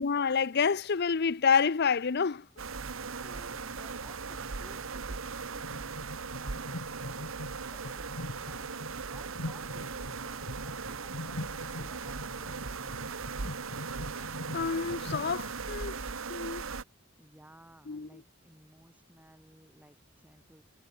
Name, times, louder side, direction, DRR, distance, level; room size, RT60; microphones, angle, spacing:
voice 1, 0.0-2.5 14.5-16.0 16.3-16.6 17.9-18.1, left 6 dB, 50° left, 0.6 m, -28 dB
sound 1, 2.6-16.8, right 5 dB, 70° right, 1.2 m, -39 dB
sound 2, 2.7-15.5, left 1 dB, 15° left, 5.8 m, -55 dB
voice 2, 3.1-13.4 17.2-20.6, right 1 dB, 10° right, 2.6 m, -58 dB
sound 3, 5.6-15.7, left 1 dB, 70° left, 1.6 m, -43 dB
head